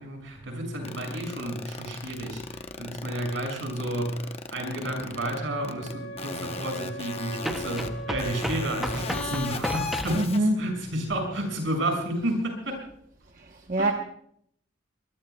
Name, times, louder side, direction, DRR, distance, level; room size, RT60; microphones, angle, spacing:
voice 1, 0.0-12.8 13.8-13.9, right 1 dB, 75° right, 6.1 m, -31 dB
sound 1, 0.8-5.4 5.6-5.9 6.2-7.9 8.2-10.4, left 4 dB, 30° left, 0.9 m, -36 dB
sound 2, 5.0-5.1 7.4-10.3, equal, ahead, 0.6 m, -34 dB
Wind instrument woodwind instrument, 5.1-9.6, right 2 dB, 65° left, 4.5 m, -40 dB
voice 2, 10.2-10.5 13.4-13.9, right 1 dB, 45° right, 1.0 m, -24 dB
24.0 x 20.5 x 2.3 m
head